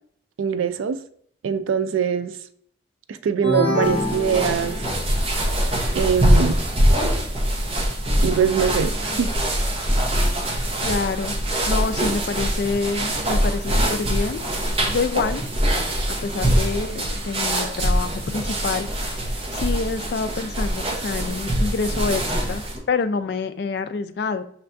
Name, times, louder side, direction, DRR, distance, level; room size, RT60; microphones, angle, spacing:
voice 1, 0.4-1.0 1.4-2.4 3.1-4.8 5.9-6.6 8.2-9.3, right 7 dB, 85° right, 0.4 m, -22 dB
sound 1, 3.4-5.3, left 1 dB, 35° left, 1.8 m, -25 dB
sound 2, 3.8-22.8, equal, 30° right, 0.7 m, -23 dB
voice 2, 10.8-11.4 11.7-15.4 16.1-24.4, left 4 dB, 55° left, 0.3 m, -27 dB
5.6 x 3.3 x 2.5 m
head